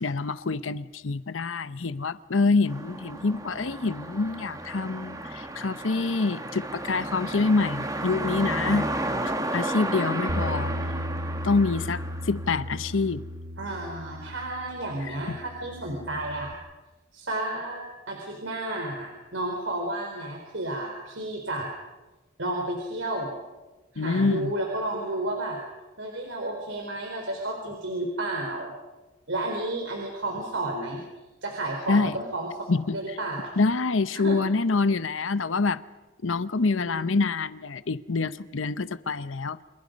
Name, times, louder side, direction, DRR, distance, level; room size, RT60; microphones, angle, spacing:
voice 1, 0.0-8.9 9.2-10.7 11.4-13.2 15.1-15.4 24.0-24.5 31.9-32.2 32.7-33.0 33.6-35.8 36.2-39.6, left 3 dB, 85° left, 0.8 m, -26 dB
sound 1, 2.7-12.9, right 1 dB, 20° right, 1.9 m, -33 dB
Bass guitar, 10.3-16.5, equal, 45° right, 1.8 m, -35 dB
voice 2, 13.6-16.5 17.1-17.8 18.1-21.7 22.4-23.3 23.9-25.6 26.0-28.7 29.3-31.0 31.4-32.5 32.9-33.5 34.1-34.3 36.5-37.3, right 1 dB, 75° right, 4.2 m, -32 dB
30.0 x 26.5 x 5.3 m
head